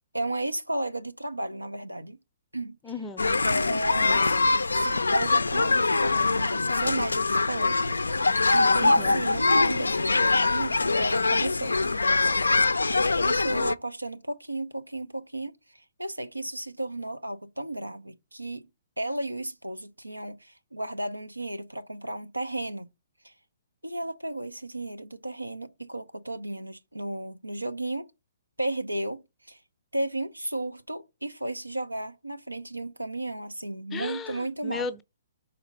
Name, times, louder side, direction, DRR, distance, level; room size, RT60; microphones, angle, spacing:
voice 1, 0.1-2.2 2.5-2.8 3.4-4.3 4.7-12.7 13.0-18.7 19.0-22.9 23.2-23.3 23.8-28.1 28.6-29.2 29.5-29.6 29.9-34.9, right 1 dB, 90° right, 0.7 m, -34 dB
voice 2, 2.8-3.3 8.8-9.2 33.9-35.0, left 4 dB, 15° left, 0.6 m, -35 dB
sound 1, 3.2-13.7, left 3 dB, 75° left, 0.4 m, -23 dB
5.4 x 4.1 x 5.1 m
figure-of-eight pair, 125°, 0 cm